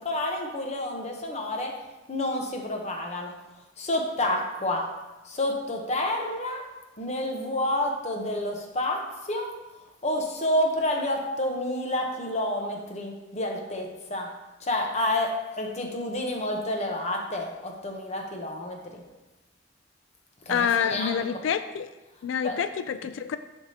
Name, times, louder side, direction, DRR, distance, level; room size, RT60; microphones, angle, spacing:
voice 1, 0.0-1.8 2.1-3.3 3.8-4.9 5.2-6.6 7.0-9.5 10.0-14.3 14.6-19.0 20.5-21.4 22.4-22.6, left 1 dB, 35° left, 1 dB, 0.9 m, -29 dB
voice 2, 20.5-21.9 22.2-23.4, left 7 dB, 85° left, 11 dB, 0.3 m, -27 dB
10.0 x 3.6 x 2.8 m, 1.1 s
head